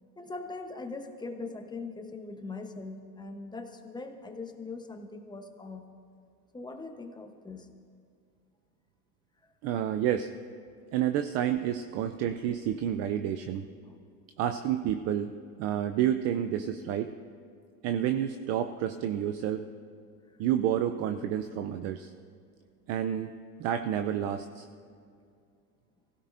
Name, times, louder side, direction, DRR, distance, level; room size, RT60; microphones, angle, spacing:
voice 1, 0.2-5.9 6.5-7.7 9.4-9.5 13.8-14.0, left 3 dB, 10° left, 5 dB, 0.9 m, -41 dB
voice 2, 9.6-10.3 10.9-13.6 14.4-15.3 15.6-17.1 17.8-19.6 20.4-22.1 22.9-23.3 23.6-24.7, right 10 dB, 35° right, 9 dB, 0.4 m, -29 dB
24.0 x 16.5 x 2.5 m, 2.4 s
supercardioid pair, 125°, 49 cm